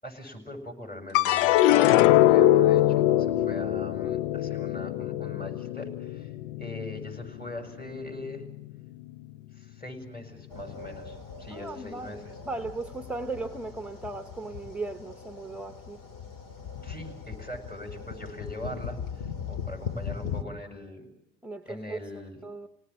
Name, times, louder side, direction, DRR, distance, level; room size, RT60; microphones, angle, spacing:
voice 1, 0.0-8.4 9.5-12.4 16.8-21.1 21.6-22.4, left 1 dB, 25° left, 7.8 m, -41 dB
sound 1, 1.1-7.6 8.0-8.7, left 13 dB, 75° left, 0.9 m, -23 dB
sound 2, 10.5-20.4, left 6 dB, 55° left, 2.4 m, -39 dB
voice 2, 11.5-12.2 12.4-16.0 21.4-22.7, right 3 dB, 5° right, 1.1 m, -37 dB
29.5 x 18.5 x 7.4 m
hypercardioid pair, 60°, 38 cm